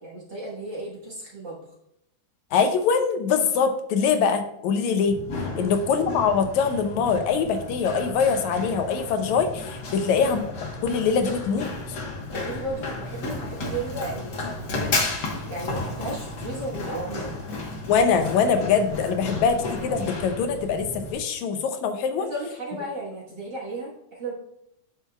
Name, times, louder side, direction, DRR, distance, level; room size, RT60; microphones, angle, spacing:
voice 1, 0.0-1.6 5.5-5.8 9.9-10.1 12.3-14.8 15.5-17.4 22.2-24.3, right 2 dB, 50° right, -4 dB, 1.6 m, -34 dB
voice 2, 2.5-5.2 5.6-10.4 10.8-12.0 17.9-22.3, left 6 dB, 80° left, 7 dB, 1.9 m, -23 dB
Run, 5.1-21.1, left 2 dB, 50° left, 1.3 m, -33 dB
9.1 x 6.8 x 2.3 m, 0.80 s
omnidirectional pair, 3.5 m